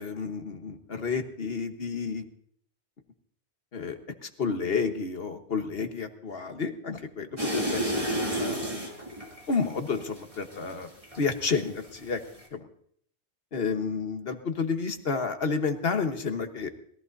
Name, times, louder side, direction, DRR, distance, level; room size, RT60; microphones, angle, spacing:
voice 1, 0.0-2.2 3.7-8.6 9.5-10.9 11.2-12.2 12.5-12.7 13.5-16.7, left 5 dB, 60° left, 6 dB, 1.5 m, -30 dB
sound 1, 7.4-11.5 11.8-12.5, equal, 30° right, 2.7 m, -31 dB
21.0 x 14.0 x 2.7 m, 0.64 s
omnidirectional pair, 1.1 m